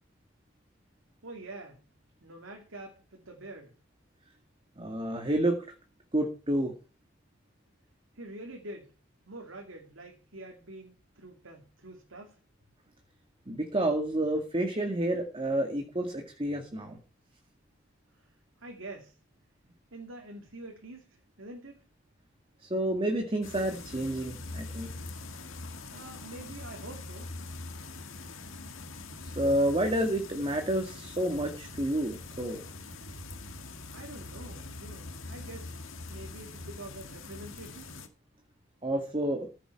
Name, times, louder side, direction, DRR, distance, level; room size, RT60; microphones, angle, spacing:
voice 1, 1.2-1.8 2.2-3.8 8.1-8.9 9.3-12.4 18.2-18.3 18.6-19.2 19.9-21.8 25.9-27.3 33.9-35.8 36.1-37.9, right 2 dB, 75° right, 2 dB, 2.7 m, -46 dB
voice 2, 4.8-5.7 6.1-6.7 13.5-17.0 22.6-24.9 29.2-32.7 38.8-39.5, right 1 dB, 25° right, 3 dB, 2.0 m, -29 dB
sound 1, 23.4-38.1, left 3 dB, 75° left, 1.9 m, -43 dB
15.0 x 8.3 x 4.6 m, 0.35 s
head